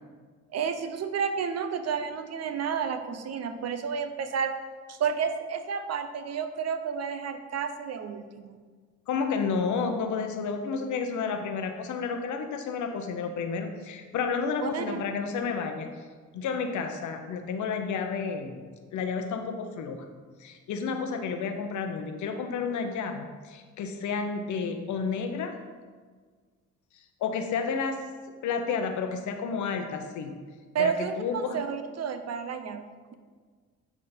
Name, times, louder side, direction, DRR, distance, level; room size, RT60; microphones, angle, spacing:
voice 1, 0.5-4.5 4.9-8.6 14.6-15.0 30.7-33.1, right 6 dB, 55° right, 8 dB, 0.7 m, -31 dB
voice 2, 9.1-15.9 16.3-18.6 18.9-20.1 20.4-25.6 27.2-28.0 28.4-30.3 30.8-31.6, left 5 dB, 75° left, 6 dB, 0.9 m, -31 dB
9.8 x 3.6 x 4.4 m, 1.5 s
cardioid pair, 90°, 30 cm